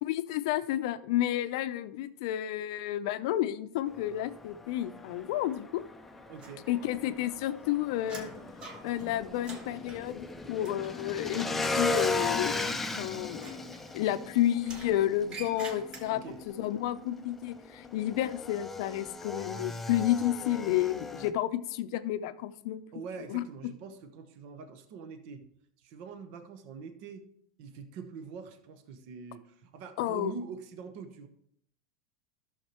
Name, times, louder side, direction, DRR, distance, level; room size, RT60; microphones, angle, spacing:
voice 1, 0.0-5.8 6.7-8.3 8.8-12.6 13.0-13.5 13.9-22.8 23.3-23.4 30.0-30.3, left 12 dB, 65° left, 12 dB, 0.5 m, -31 dB
Motorcycle / Engine, 3.9-21.3, left 3 dB, 10° left, 0.6 m, -37 dB
voice 2, 6.3-6.7 16.1-16.4 22.9-25.5 25.8-27.2 27.6-31.3, right 5 dB, 55° right, 8 dB, 1.0 m, -44 dB
sound 1, 6.4-7.2 7.4-11.2 11.5-11.9 13.3-14.2 14.6-16.4, right 3 dB, 30° right, 1.3 m, -48 dB
12.0 x 6.5 x 3.0 m, 0.70 s
supercardioid pair, 130°, 3 cm